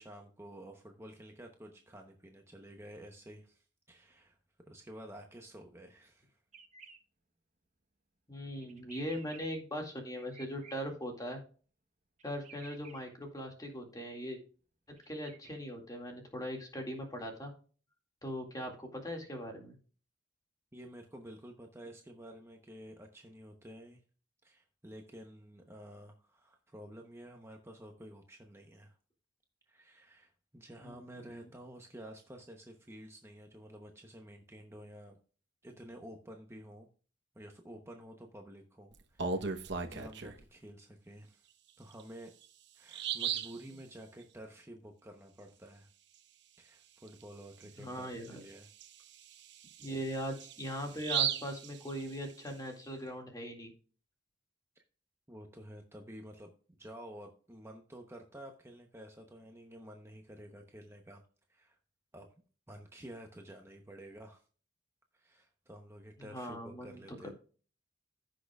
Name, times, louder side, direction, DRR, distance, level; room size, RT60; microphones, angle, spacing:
voice 1, 0.0-4.4 4.6-6.4 20.7-24.0 24.4-29.0 29.7-35.2 35.6-36.9 37.3-41.5 41.8-42.3 42.7-45.9 46.6-48.7 54.8-54.9 55.3-56.5 56.8-61.2 61.5-61.8 62.1-62.3 62.7-64.4 65.1-67.3, right 1 dB, 15° right, 3 dB, 0.9 m, -51 dB
sound 1, 6.5-7.0 8.6-9.5 10.2-10.7 12.2-13.0 15.0-15.6, right 6 dB, 40° right, 1.2 m, -55 dB
voice 2, 8.3-11.4 12.2-14.4 15.1-17.5 18.2-19.7 30.8-31.5 47.8-48.4 49.8-53.7 66.2-67.3, equal, 20° left, 2 dB, 2.1 m, -40 dB
Bird vocalization bird call bird song, 39.0-40.4 41.9-42.0 42.4-42.5 42.9-43.6 47.1-47.2 47.6-47.7 48.2-52.5, right 7 dB, 65° right, 1.0 m, -37 dB
15.5 x 6.4 x 2.4 m, 0.39 s
head